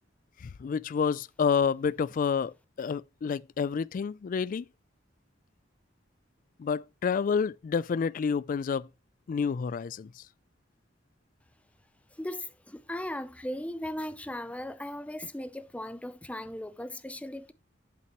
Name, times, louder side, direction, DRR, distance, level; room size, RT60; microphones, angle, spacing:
voice 1, 0.4-4.7 6.6-8.9 9.3-10.2, left 6 dB, 45° left, 0.3 m, -29 dB
voice 2, 12.1-17.5, left 1 dB, 5° left, 0.6 m, -37 dB
8.5 x 7.7 x 3.0 m
head